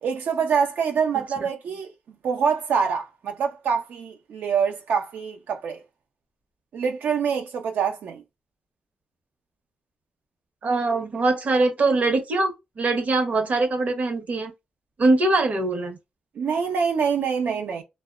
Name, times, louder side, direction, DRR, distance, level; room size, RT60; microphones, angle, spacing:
voice 1, 0.0-1.9 2.2-5.8 6.7-8.2 16.4-17.8, right 6 dB, 90° right, 0.5 m, -25 dB
voice 2, 10.6-14.5 15.0-16.0, right 2 dB, 50° right, 0.7 m, -22 dB
2.8 x 2.0 x 2.2 m
wide cardioid pair, 130°, 3 cm